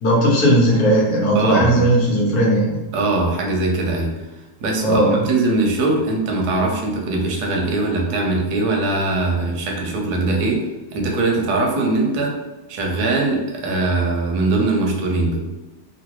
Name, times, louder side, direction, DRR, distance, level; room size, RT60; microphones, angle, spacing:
voice 1, 0.0-2.8 4.8-5.2, right 1 dB, 75° left, -3 dB, 1.4 m, -16 dB
voice 2, 1.3-1.9 2.9-4.1 4.6-10.6 10.9-12.3 12.7-15.5, right 2 dB, 85° right, 0 dB, 1.2 m, -21 dB
3.0 x 2.8 x 2.9 m, 1.1 s
omnidirectional pair, 1.6 m